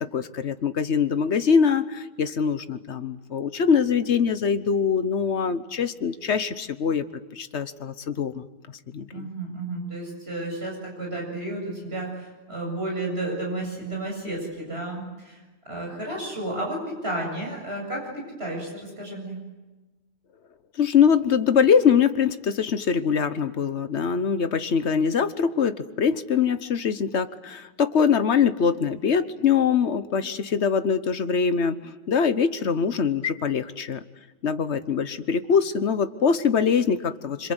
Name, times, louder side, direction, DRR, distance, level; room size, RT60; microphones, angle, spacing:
voice 1, 0.0-7.0 7.3-8.4 8.9-9.3 20.8-31.8 32.1-34.0 34.4-37.5, left 6 dB, 85° left, 11 dB, 1.4 m, -23 dB
voice 2, 9.1-15.4 15.7-19.4, right 2 dB, 70° right, -1 dB, 8.0 m, -32 dB
27.0 x 26.5 x 8.1 m, 1.1 s
omnidirectional pair, 1.1 m